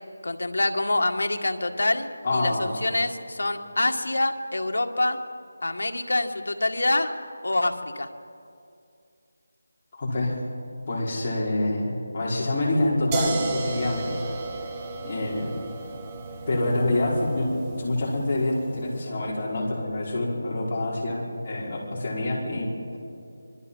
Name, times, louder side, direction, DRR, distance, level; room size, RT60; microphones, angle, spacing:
voice 1, 0.2-5.2 5.6-7.1 7.4-8.1, left 2 dB, 80° left, 5 dB, 2.0 m, -26 dB
voice 2, 2.2-2.7 9.9-10.3 10.9-14.3 15.0-15.6 16.5-23.0, left 1 dB, 30° left, -4 dB, 5.1 m, -26 dB
sound 1, 13.1-18.9, right 4 dB, 15° right, 1.7 m, -35 dB
25.5 x 22.5 x 5.7 m, 2.5 s
figure-of-eight pair, 175°, 0 cm